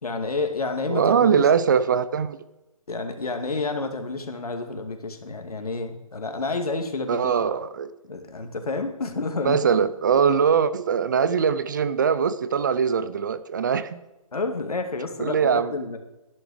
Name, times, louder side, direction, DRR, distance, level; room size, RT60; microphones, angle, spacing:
voice 1, 0.0-1.4 2.9-7.3 8.1-9.6 14.3-16.0, left 3 dB, 85° left, 6 dB, 2.3 m, -29 dB
voice 2, 0.9-2.5 7.1-7.9 9.4-14.0 15.2-15.7, right 6 dB, 35° right, 15 dB, 0.5 m, -22 dB
12.0 x 11.0 x 4.9 m, 0.97 s
hypercardioid pair, 160°, 19 cm